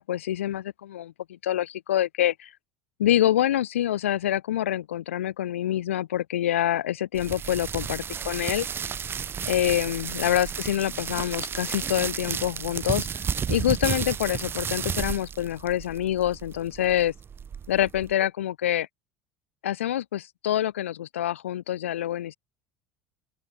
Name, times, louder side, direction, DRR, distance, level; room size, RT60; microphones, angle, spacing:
voice 1, 0.0-2.5 3.0-8.7 9.5-13.1 13.5-17.1 17.7-18.9 19.6-22.4, left 12 dB, 80° left, 2.0 m, -26 dB
sound 1, 7.1-18.1, right 7 dB, 35° right, 3.9 m, -32 dB
open air
hypercardioid pair, 75°, 7 cm